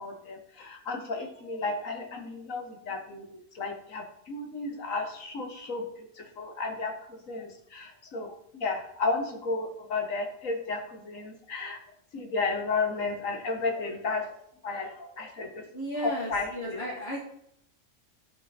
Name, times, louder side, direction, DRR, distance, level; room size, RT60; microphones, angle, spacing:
voice 1, 0.0-7.0 7.3-11.8 12.1-14.3 14.6-15.6 16.0-16.8, left 3 dB, 85° left, 4 dB, 1.8 m, -33 dB
voice 2, 15.7-17.3, equal, 55° left, -3 dB, 1.7 m, -34 dB
12.5 x 5.1 x 4.4 m, 0.73 s
omnidirectional pair, 1.3 m